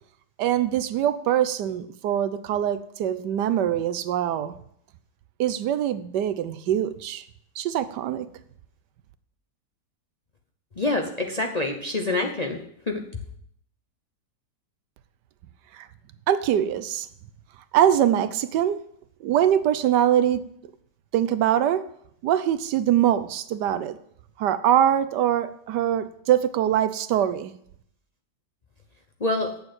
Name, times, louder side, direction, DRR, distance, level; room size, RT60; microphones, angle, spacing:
voice 1, 0.4-4.5 5.4-7.2 7.6-8.3 15.7-15.9 16.3-17.1 17.7-18.9 19.2-20.4 21.1-21.9 22.2-24.0 24.4-27.5, right 10 dB, 75° right, 13 dB, 1.3 m, -23 dB
voice 2, 10.8-12.6 12.9-13.0 29.2-29.5, left 2 dB, 35° left, 2 dB, 0.7 m, -26 dB
8.6 x 7.0 x 7.9 m, 0.68 s
omnidirectional pair, 1.9 m